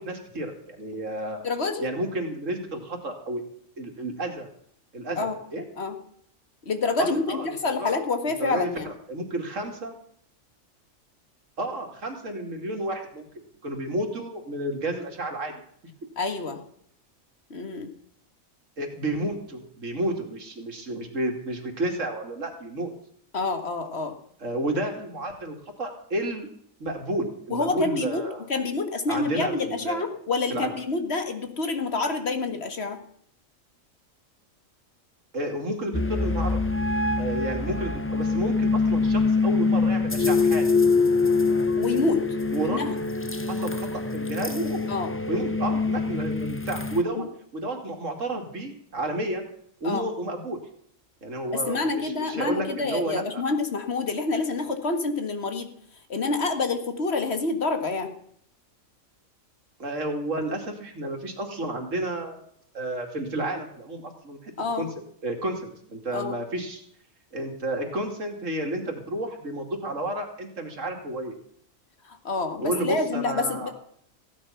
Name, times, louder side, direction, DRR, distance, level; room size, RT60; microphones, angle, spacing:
voice 1, 0.0-1.4 1.8-3.4 3.8-4.5 4.9-5.6 7.0-7.9 8.4-9.9 11.6-13.2 13.6-15.5 18.8-22.9 24.4-26.5 26.8-28.4 29.1-30.0 30.5-30.7 35.3-36.6 37.2-40.6 42.5-42.9 43.4-44.8 45.3-47.3 47.5-49.5 49.8-50.6 51.2-53.4 59.8-62.4 62.7-64.9 65.2-66.8 67.3-71.3 72.6-73.7, right 1 dB, 70° right, 3 dB, 2.9 m, -31 dB
voice 2, 1.4-1.9 5.2-5.4 5.8-6.0 6.6-8.9 16.2-16.6 17.5-17.9 23.3-24.2 27.5-28.2 28.5-33.0 41.8-42.2 42.6-43.0 44.9-45.1 47.2-47.3 49.8-50.0 51.5-55.7 56.1-58.1 64.6-64.9 66.1-66.4 72.1-73.7, left 3 dB, 50° left, 7 dB, 2.0 m, -27 dB
sound 1, 35.9-47.0, left 4 dB, 15° left, 0.5 m, -24 dB
16.0 x 10.0 x 5.8 m, 0.66 s
omnidirectional pair, 1.4 m